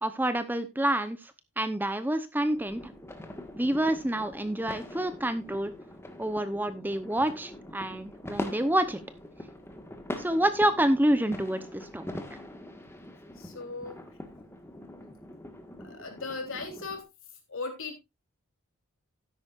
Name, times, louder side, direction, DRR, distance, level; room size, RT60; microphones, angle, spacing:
voice 1, 0.0-2.9 3.6-5.7 6.2-9.0 10.2-12.1, right 1 dB, 10° right, 11 dB, 0.8 m, -28 dB
sound 1, 2.5-17.0, left 1 dB, 10° left, 1.6 m, -43 dB
voice 2, 13.4-14.0 15.8-17.0 17.5-18.0, left 3 dB, 60° left, 4 dB, 3.5 m, -37 dB
13.0 x 10.5 x 2.5 m, 0.23 s
head